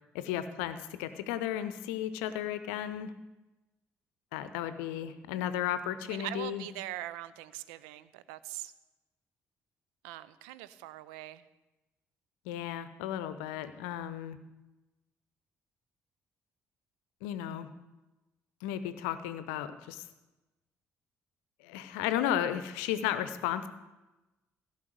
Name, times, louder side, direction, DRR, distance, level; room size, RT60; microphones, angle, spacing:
voice 1, 0.1-3.1 4.3-6.7 12.4-14.4 17.2-17.7 18.6-20.0 21.6-23.7, left 11 dB, 70° left, 12 dB, 0.7 m, -34 dB
voice 2, 6.0-8.7 10.0-11.4, right 15 dB, 70° right, 15 dB, 0.5 m, -42 dB
15.5 x 5.6 x 7.9 m, 1.1 s
figure-of-eight pair, 45°, 8 cm